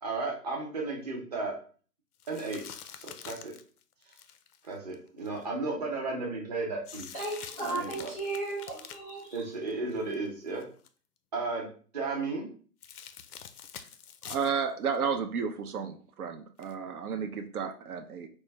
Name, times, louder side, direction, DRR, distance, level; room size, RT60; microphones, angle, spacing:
voice 1, 0.0-1.6 2.3-2.6 3.0-3.5 4.6-7.1 7.6-8.1 9.3-10.6 11.3-11.7 11.9-12.5, right 3 dB, 25° right, 0.7 m, -34 dB
sound 1, 2.2-5.4 6.8-10.1 10.5-10.9 12.8-14.6 14.9-15.0 16.6-16.7, left 8 dB, 70° left, 0.5 m, -46 dB
voice 2, 7.1-9.5, right 2 dB, 10° left, 0.5 m, -35 dB
voice 3, 14.2-18.3, right 6 dB, 65° right, 0.6 m, -32 dB
4.5 x 2.1 x 3.2 m
hypercardioid pair, 160°, 47 cm